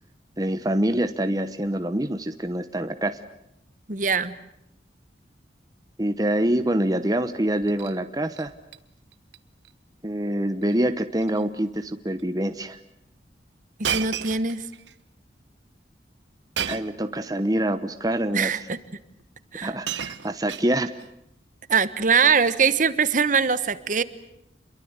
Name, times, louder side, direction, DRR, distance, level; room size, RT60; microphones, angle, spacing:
voice 1, 0.4-3.2 6.0-8.5 10.0-12.8 16.7-18.5 19.6-20.9, right 1 dB, 20° right, 9 dB, 1.0 m, -25 dB
voice 2, 3.9-4.3 13.8-14.6 18.3-18.8 19.5-19.7 21.7-24.0, right 5 dB, 45° right, 15 dB, 1.2 m, -22 dB
Shatter, 7.5-8.0 8.3-8.8 9.1-9.4 9.6-9.7 10.6-10.8 11.2-11.4 12.2-12.3 13.8-14.9 16.6-17.0 18.1-18.2 19.2-19.3 19.6-21.1 22.0-22.3, right 8 dB, 80° right, 1.1 m, -33 dB
28.5 x 22.5 x 8.1 m, 0.79 s
head